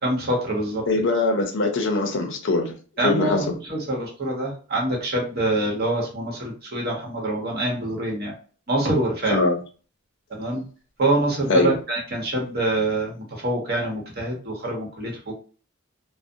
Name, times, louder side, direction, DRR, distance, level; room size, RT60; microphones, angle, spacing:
voice 1, 0.0-0.8 3.0-8.3 8.7-9.4 10.4-10.6 11.0-15.3, right 1 dB, 50° right, 0.9 m, -25 dB
voice 2, 0.9-2.7 3.0-3.4 9.3-9.6 11.5-11.7, left 2 dB, 60° left, 0.5 m, -22 dB
2.5 x 2.0 x 2.6 m
head